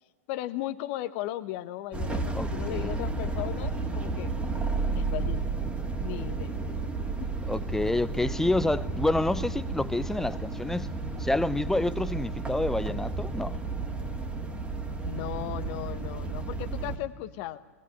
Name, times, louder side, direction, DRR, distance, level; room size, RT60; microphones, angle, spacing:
voice 1, 0.3-4.3 4.9-5.5 6.0-6.5 15.1-17.6, left 14 dB, 45° left, 1.1 m, -36 dB
sound 1, 1.9-17.0, right 3 dB, 15° right, 2.5 m, -32 dB
voice 2, 2.3-3.0 7.5-10.9 11.2-13.6, left 2 dB, 5° left, 0.7 m, -28 dB
23.0 x 18.5 x 9.8 m
figure-of-eight pair, 100°, 8 cm